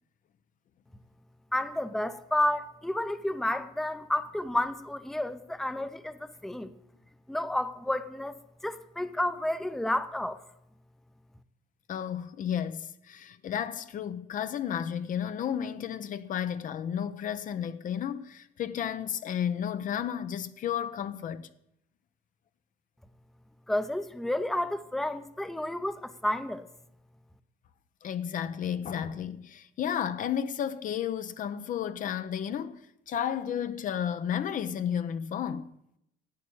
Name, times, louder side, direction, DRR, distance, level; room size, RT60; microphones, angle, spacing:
voice 1, 1.5-6.7 7.3-8.3 8.6-10.4 23.7-26.7, left 1 dB, ahead, 0.7 m, -31 dB
voice 2, 11.9-21.5 28.0-32.8 33.1-35.7, left 9 dB, 50° left, 0.7 m, -32 dB
11.5 x 8.3 x 8.6 m
cardioid pair, 110°, 17 cm